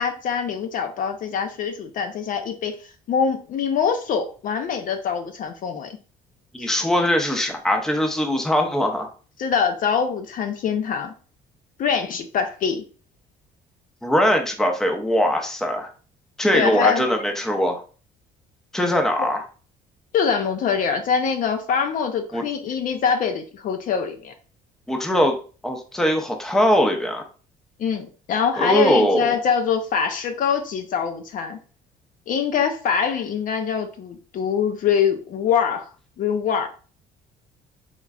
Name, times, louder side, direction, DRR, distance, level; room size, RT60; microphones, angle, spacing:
voice 1, 0.0-2.8 3.1-6.0 6.6-6.7 9.4-11.1 11.8-12.8 16.5-17.1 19.2-19.3 20.1-24.3 27.8-31.6 32.3-35.9 36.2-36.7, left 6 dB, 55° left, 0.5 m, -24 dB
voice 2, 6.5-9.1 14.0-15.9 16.4-17.8 18.7-19.4 22.3-22.4 24.9-25.4 25.6-27.2 28.6-29.4, equal, 5° left, 0.6 m, -21 dB
3.6 x 3.0 x 2.3 m
cardioid pair, 110°, 17 cm